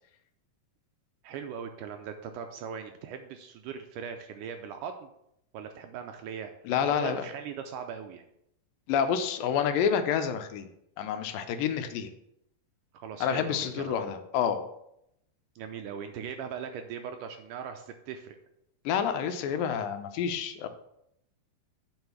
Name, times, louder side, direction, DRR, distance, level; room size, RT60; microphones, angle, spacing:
voice 1, 1.2-5.1 5.5-6.5 6.8-8.3 12.9-14.0 15.6-18.4, right 7 dB, 80° right, 6 dB, 2.0 m, -39 dB
voice 2, 6.7-7.3 8.9-10.7 11.0-12.1 13.2-14.6 18.9-20.7, left 8 dB, 80° left, 8 dB, 2.4 m, -28 dB
7.9 x 4.6 x 7.0 m, 0.78 s
omnidirectional pair, 4.1 m